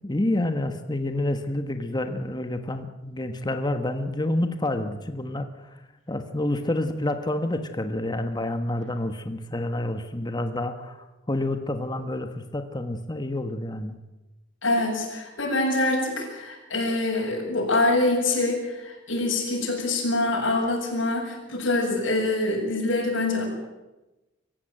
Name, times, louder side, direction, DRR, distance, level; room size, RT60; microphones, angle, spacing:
voice 1, 0.0-5.8 6.1-14.0, left 1 dB, 20° left, 7 dB, 1.3 m, -28 dB
voice 2, 14.6-23.4, left 2 dB, 80° left, 1 dB, 7.6 m, -25 dB
25.0 x 15.5 x 9.0 m, 1.0 s
head